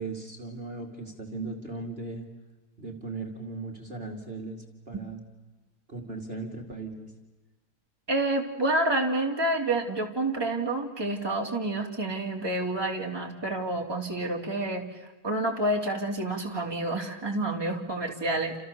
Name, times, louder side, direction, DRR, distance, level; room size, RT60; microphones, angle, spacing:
voice 1, 0.0-2.3 2.8-5.2 5.9-7.1, right 3 dB, 35° right, 3 dB, 2.9 m, -37 dB
voice 2, 8.1-14.8 15.2-18.6, right 2 dB, 15° right, 1 dB, 3.0 m, -28 dB
29.5 x 28.5 x 7.0 m, 1.2 s
omnidirectional pair, 1.7 m